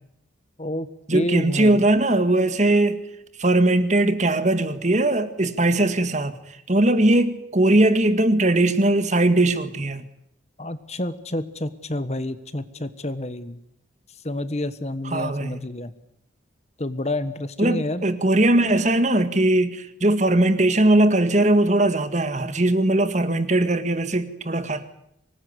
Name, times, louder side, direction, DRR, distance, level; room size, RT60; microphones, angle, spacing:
voice 1, 0.6-1.8 10.6-13.6 14.2-15.9 16.8-18.0, left 1 dB, 35° left, 1.3 m, -29 dB
voice 2, 1.1-3.0 3.4-10.0 15.0-15.6 17.6-24.8, right 1 dB, 35° right, 1.8 m, -20 dB
25.0 x 20.0 x 9.7 m
head